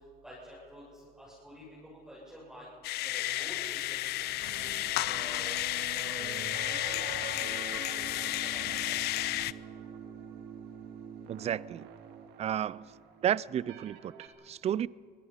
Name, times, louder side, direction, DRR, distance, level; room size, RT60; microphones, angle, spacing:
voice 1, 0.2-0.8 1.2-2.7 3.0-5.5 5.9-9.0, equal, 5° right, 7.8 m, -49 dB
sound 1, 2.8-9.5, left 17 dB, 75° left, 0.5 m, -32 dB
sound 2, 3.1-14.3, right 7 dB, 90° right, 1.9 m, -46 dB
voice 2, 11.3-11.9 12.4-12.9 13.2-14.9, right 10 dB, 40° right, 0.4 m, -32 dB
24.5 x 19.5 x 5.7 m
cardioid pair, 110°, 17 cm